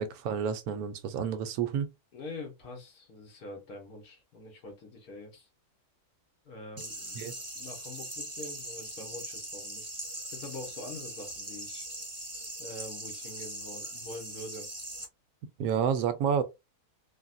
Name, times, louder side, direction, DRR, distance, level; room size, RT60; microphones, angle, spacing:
voice 1, 0.0-1.9 7.1-7.3 15.6-16.4, right 7 dB, 75° right, 1.1 m, -29 dB
voice 2, 2.1-5.5 6.4-9.9 10.3-11.9 12.6-14.7, left 2 dB, 75° left, 1.5 m, -44 dB
sound 1, 6.8-15.1, right 1 dB, 15° right, 0.7 m, -41 dB
3.9 x 2.2 x 2.5 m
omnidirectional pair, 1.6 m